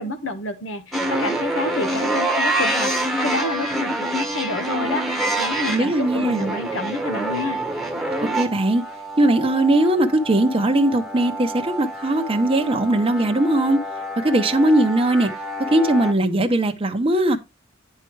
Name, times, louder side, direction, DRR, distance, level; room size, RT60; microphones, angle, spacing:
voice 1, 0.0-2.9 3.2-7.6, left 2 dB, 70° left, 1.3 m, -28 dB
sound 1, 0.9-16.1, right 1 dB, ahead, 1.3 m, -27 dB
voice 2, 5.7-6.5 8.3-8.8 9.2-13.8 14.2-15.3 15.7-17.4, right 1 dB, 30° right, 0.9 m, -19 dB
9.7 x 4.6 x 4.6 m
head